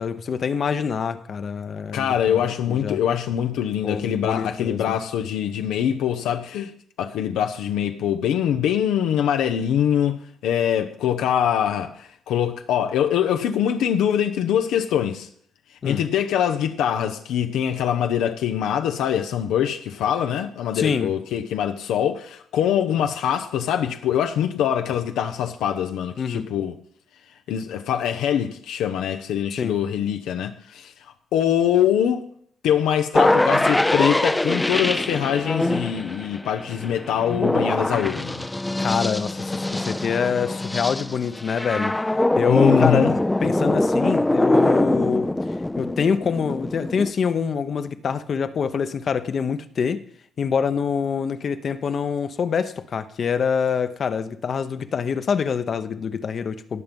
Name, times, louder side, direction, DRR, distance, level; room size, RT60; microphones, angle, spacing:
voice 1, 0.0-2.4 2.7-3.0 3.8-4.8 15.8-16.0 20.7-21.1 26.2-26.5 29.5-29.7 38.8-42.0 42.4-45.3 45.8-50.0 50.4-56.8, left 6 dB, 50° left, 0.9 m, -25 dB
voice 2, 1.9-6.7 7.0-15.3 15.8-26.8 27.5-30.9 31.3-32.3 32.6-38.5 42.5-43.1, left 9 dB, 85° left, 0.8 m, -23 dB
sound 1, 33.1-47.1, left 1 dB, 10° left, 0.5 m, -23 dB
17.5 x 5.9 x 5.3 m
cardioid pair, 90°, 0 cm